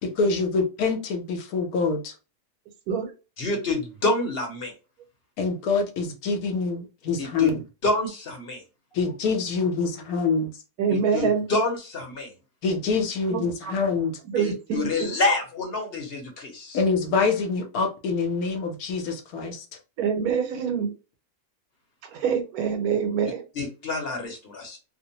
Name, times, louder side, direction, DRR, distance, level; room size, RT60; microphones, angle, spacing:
voice 1, 0.0-2.1 5.4-7.6 8.9-10.5 12.6-14.2 16.7-19.6, left 4 dB, 80° left, 5 dB, 1.2 m, -25 dB
voice 2, 3.4-4.7 7.2-7.5 7.8-8.6 10.9-12.3 14.4-16.8 23.6-24.8, left 2 dB, 50° left, 2 dB, 0.9 m, -27 dB
voice 3, 10.8-11.4 13.3-13.7 14.2-15.1 20.0-20.9 22.1-23.4, right 6 dB, 85° right, 5 dB, 1.2 m, -25 dB
2.9 x 2.0 x 2.7 m, 0.31 s
omnidirectional pair, 1.5 m